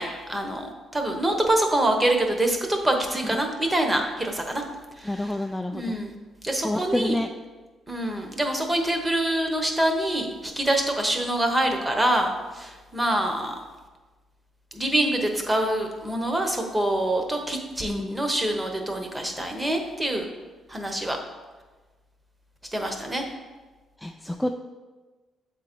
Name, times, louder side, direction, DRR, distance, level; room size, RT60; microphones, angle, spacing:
voice 1, 0.0-4.6 5.0-5.4 5.7-6.1 6.4-7.2 7.9-13.5 14.7-20.3 20.7-21.2 22.7-23.2, right 1 dB, 15° right, 4 dB, 1.0 m, -25 dB
voice 2, 5.1-6.0 6.6-7.3 17.8-18.3 24.0-24.5, left 1 dB, 5° left, 3 dB, 0.3 m, -28 dB
7.3 x 3.9 x 4.5 m, 1.3 s
cardioid pair, 90°, 0 cm